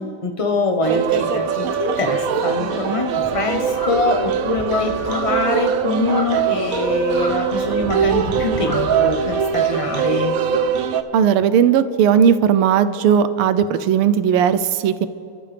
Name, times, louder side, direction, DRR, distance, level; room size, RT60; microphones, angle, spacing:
voice 1, 0.0-10.4, left 2 dB, 50° left, 3 dB, 0.4 m, -23 dB
sound 1, 0.8-11.0, right 7 dB, 70° right, 0.8 m, -22 dB
sound 2, 1.9-10.5, right 1 dB, 15° right, 1.4 m, -41 dB
sound 3, 3.2-9.4, equal, 15° left, 2.1 m, -33 dB
voice 2, 11.1-15.1, right 8 dB, 90° right, 12 dB, 1.6 m, -16 dB
28.5 x 13.0 x 3.3 m, 2.7 s
omnidirectional pair, 2.3 m